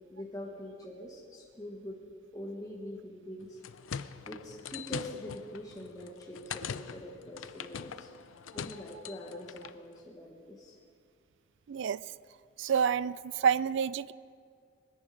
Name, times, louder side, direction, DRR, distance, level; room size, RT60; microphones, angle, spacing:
voice 1, 0.0-2.0 2.3-3.6 4.3-8.1 8.5-10.7, left 1 dB, 20° left, -3 dB, 1.4 m, -44 dB
sound 1, 3.4-9.8, left 7 dB, 90° left, 0.5 m, -43 dB
voice 2, 11.7-12.0 12.6-13.2 13.4-14.1, right 7 dB, 65° right, 18 dB, 0.4 m, -28 dB
21.5 x 10.0 x 5.2 m, 2.2 s
head